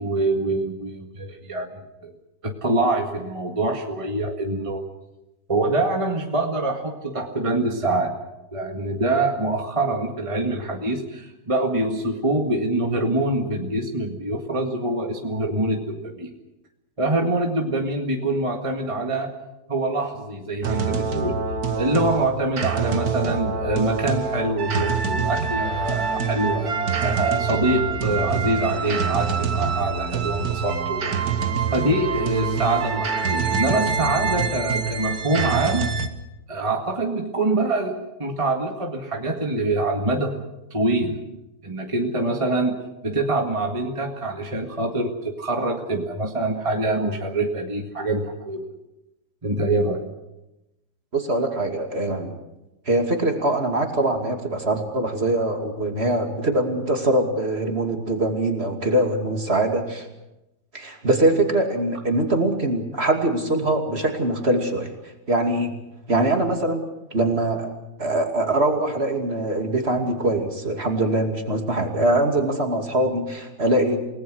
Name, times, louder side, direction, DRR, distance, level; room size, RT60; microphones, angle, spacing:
voice 1, 0.0-2.1 2.4-4.8 5.5-8.1 8.5-16.3 17.0-19.3 19.7-21.4 21.8-35.9 36.5-40.3 40.7-41.2 41.6-42.8 43.0-48.7 49.4-50.1, right 2 dB, 20° right, 2 dB, 1.9 m, -25 dB
sound 1, 20.6-36.1, right 5 dB, 65° right, 1.9 m, -25 dB
voice 2, 51.1-52.3 52.9-60.1 60.7-64.9 65.3-65.7 66.1-66.8 67.1-67.7 68.0-74.0, right 1 dB, 40° right, 4 dB, 2.8 m, -23 dB
29.0 x 19.0 x 6.3 m, 0.95 s
omnidirectional pair, 1.7 m